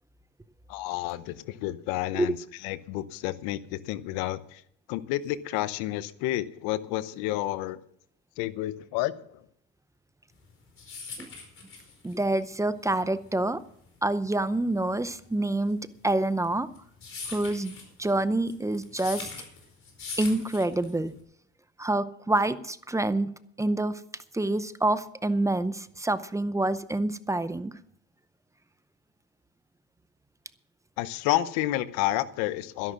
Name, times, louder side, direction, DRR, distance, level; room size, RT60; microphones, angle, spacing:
voice 1, 0.7-2.4 2.6-4.6 4.9-7.8 8.4-9.2 31.0-32.9, left 15 dB, 80° left, 15 dB, 1.0 m, -30 dB
sound 1, 10.4-21.2, left 4 dB, 35° left, 4.7 m, -42 dB
voice 2, 12.0-13.6 14.0-16.7 17.3-17.7 18.0-19.3 20.2-21.1 21.8-23.3 23.6-24.0 24.3-27.7, right 2 dB, 10° right, 14 dB, 0.7 m, -27 dB
12.5 x 11.0 x 6.1 m, 0.69 s
supercardioid pair, 110°, 37 cm